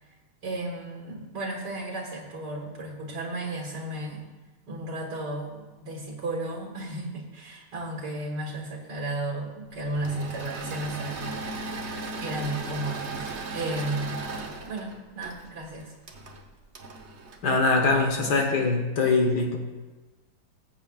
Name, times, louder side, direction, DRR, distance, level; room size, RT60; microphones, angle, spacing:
voice 1, 0.4-4.2 4.7-11.4 12.2-14.3 14.7-15.9, right 1 dB, 85° right, 0 dB, 2.2 m, -34 dB
Engine / Mechanisms, 9.9-18.3, right 3 dB, 45° right, 1.2 m, -37 dB
voice 2, 17.4-19.6, left 3 dB, 75° left, 2 dB, 1.8 m, -23 dB
19.5 x 8.2 x 2.4 m, 1.2 s
omnidirectional pair, 1.8 m